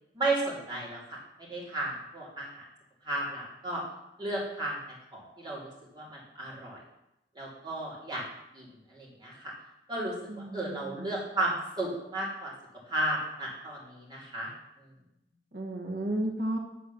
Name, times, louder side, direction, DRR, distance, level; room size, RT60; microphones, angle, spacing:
voice 1, 0.1-2.6 3.0-3.8 4.2-4.8 5.1-6.8 7.3-8.2 8.5-9.5 9.9-10.1 10.5-12.5 12.9-14.5 14.8-14.9, right 2 dB, 25° right, -5 dB, 2.8 m, -34 dB
voice 2, 10.3-11.2 15.5-16.6, right 1 dB, 55° right, 1 dB, 1.4 m, -33 dB
9.1 x 4.3 x 6.8 m, 0.87 s
head